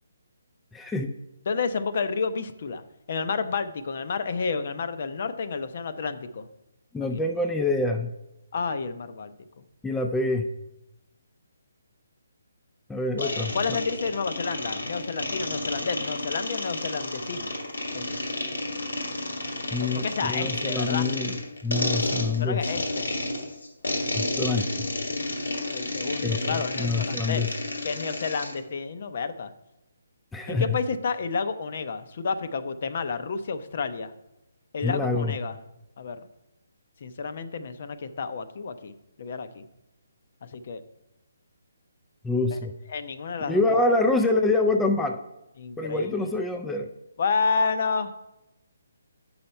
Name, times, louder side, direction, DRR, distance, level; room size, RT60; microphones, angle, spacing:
voice 1, 0.7-1.1 6.9-8.1 9.8-10.5 12.9-13.8 19.7-21.4 21.6-22.6 24.2-24.9 26.2-27.5 30.3-30.8 34.8-35.4 42.2-42.7 43.4-45.2 45.8-46.9, left 2 dB, 5° left, 4 dB, 0.4 m, -26 dB
voice 2, 1.5-2.8 3.1-6.5 8.5-9.6 13.2-17.5 17.9-18.2 19.8-21.1 22.4-23.1 25.7-27.5 27.8-29.5 30.5-34.1 34.7-35.6 36.0-36.2 37.0-38.9 39.2-39.7 40.5-40.8 42.5-42.6 42.9-43.6 45.6-46.2 47.2-48.1, left 5 dB, 50° left, 11 dB, 0.6 m, -30 dB
sound 1, 13.2-28.6, left 2 dB, 85° left, 1.3 m, -31 dB
7.8 x 5.7 x 4.3 m, 0.93 s
hypercardioid pair, 150°, 0 cm